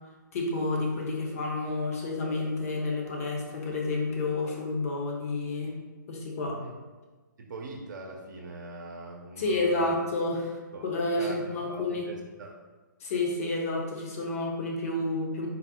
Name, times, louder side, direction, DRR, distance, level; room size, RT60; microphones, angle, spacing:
voice 1, 0.3-5.8 6.1-6.6 9.4-12.1 13.0-15.5, left 2 dB, 45° left, 0 dB, 0.9 m, -30 dB
voice 2, 7.4-10.0 10.7-10.8 11.2-12.5, right 2 dB, 65° right, 0 dB, 0.6 m, -42 dB
4.1 x 2.1 x 4.2 m, 1.3 s
hypercardioid pair, 150°, 11 cm